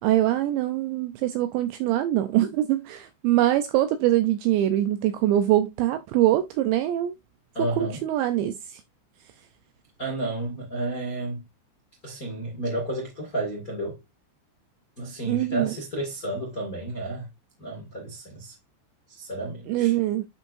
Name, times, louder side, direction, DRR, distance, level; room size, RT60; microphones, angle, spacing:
voice 1, 0.0-7.2 7.8-8.8 15.3-15.7 19.7-20.3, right 13 dB, 80° right, 2.6 m, -23 dB
voice 2, 7.5-8.0 10.0-11.4 12.0-14.0 15.0-17.3 17.6-18.5 19.1-19.9, right 1 dB, 40° left, 1.2 m, -31 dB
11.5 x 5.0 x 2.6 m
omnidirectional pair, 5.7 m